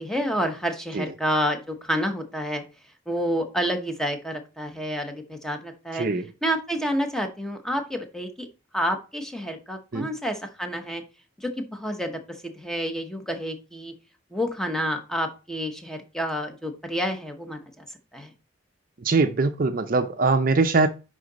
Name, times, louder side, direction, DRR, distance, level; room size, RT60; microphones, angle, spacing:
voice 1, 0.0-2.6 3.1-6.1 6.4-8.5 8.7-11.0 11.4-13.9 14.3-17.8 18.1-18.3, equal, 5° left, 0.9 m, -29 dB
voice 2, 19.0-20.9, right 3 dB, 45° right, 0.5 m, -22 dB
10.0 x 3.8 x 4.0 m
head